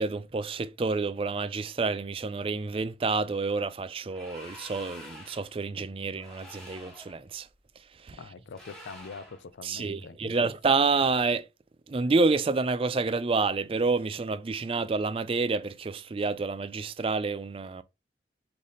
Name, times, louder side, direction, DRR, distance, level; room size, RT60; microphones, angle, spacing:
voice 1, 0.0-7.5 8.0-8.2 9.6-11.5 11.9-17.8, right 4 dB, 30° right, 0.4 m, -28 dB
sound 1, 4.1-5.5 6.2-7.2 8.5-9.4, equal, 5° left, 1.4 m, -47 dB
voice 2, 8.2-10.5, left 4 dB, 80° left, 0.4 m, -44 dB
4.0 x 3.4 x 3.8 m
head